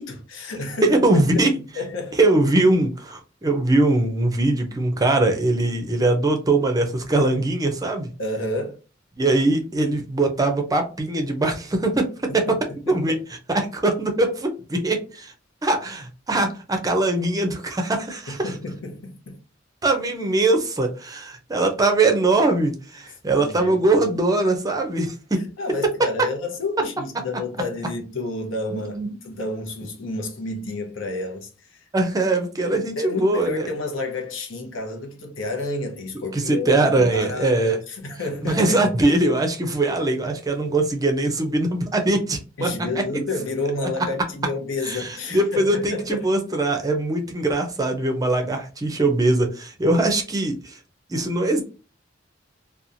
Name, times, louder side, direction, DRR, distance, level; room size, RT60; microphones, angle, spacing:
voice 1, 0.0-1.1 1.3-2.2 8.2-8.8 12.3-13.2 18.3-19.4 23.4-24.0 25.6-31.9 32.6-39.0 42.6-46.3, left 2 dB, 80° left, 0.8 m, -30 dB
voice 2, 0.8-1.5 2.2-8.1 9.2-13.2 13.5-15.3 15.6-18.4 19.8-25.5 25.8-25.9 28.7-29.1 31.9-33.7 36.3-37.8 38.4-42.7 44.8-50.8 51.1-51.6, right 2 dB, 20° right, 0.5 m, -21 dB
2.9 x 2.2 x 2.5 m
head